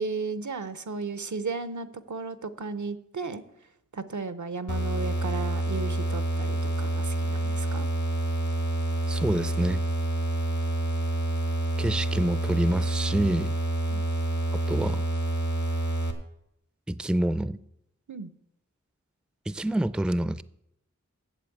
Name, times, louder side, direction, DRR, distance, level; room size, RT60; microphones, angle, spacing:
voice 1, 0.0-3.4 3.9-7.9 13.9-14.0 18.1-18.3, right 4 dB, 85° right, 0.7 m, -34 dB
sound 1, 4.7-16.1, right 1 dB, 80° left, 1.6 m, -28 dB
voice 2, 9.1-9.8 11.8-13.5 14.5-15.0 16.9-17.6 19.5-20.4, right 1 dB, 5° right, 0.4 m, -27 dB
8.2 x 7.2 x 8.4 m
wide cardioid pair, 45°, 29 cm